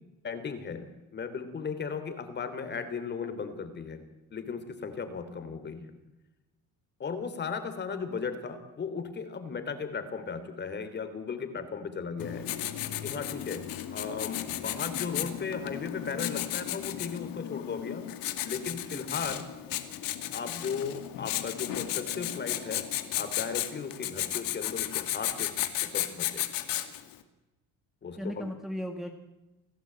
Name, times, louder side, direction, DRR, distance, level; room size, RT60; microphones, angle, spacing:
voice 1, 0.2-0.9 1.1-4.0 4.3-5.9 7.0-12.4 13.0-13.6 13.9-18.1 18.4-19.5 20.3-22.8 23.2-25.5 25.8-26.5 28.0-28.5, left 5 dB, 30° left, 10 dB, 3.3 m, -36 dB
Writing, 12.2-27.1, left 13 dB, 70° left, 2.4 m, -34 dB
voice 2, 28.2-29.1, equal, ahead, 4 dB, 1.8 m, -37 dB
29.0 x 17.5 x 8.8 m, 1.0 s
cardioid pair, 155°, 35 cm